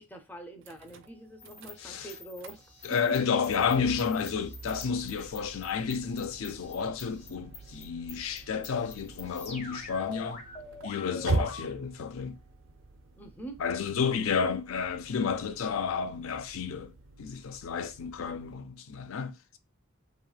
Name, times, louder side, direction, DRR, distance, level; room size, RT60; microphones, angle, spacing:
voice 1, 0.0-2.6 3.1-3.2 13.2-13.6, right 2 dB, 10° left, 0.4 m, -44 dB
sound 1, 0.6-18.6, right 3 dB, 65° right, 0.4 m, -42 dB
sound 2, 1.4-11.9, left 3 dB, 30° left, 0.8 m, -47 dB
voice 2, 1.8-2.1 2.8-10.4 10.8-12.4 13.6-16.9 17.2-19.6, left 6 dB, 80° left, 0.4 m, -31 dB
3.0 x 2.8 x 2.3 m
head